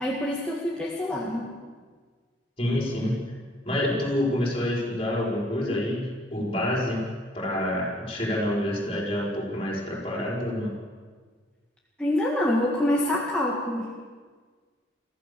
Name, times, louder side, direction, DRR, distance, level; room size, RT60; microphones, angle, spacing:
voice 1, 0.0-1.5 12.0-13.9, left 1 dB, 5° left, -5 dB, 2.0 m, -26 dB
voice 2, 2.6-3.2 3.7-7.0 7.3-10.7, left 1 dB, 30° left, -2 dB, 5.2 m, -27 dB
24.0 x 15.5 x 7.0 m, 1.5 s
head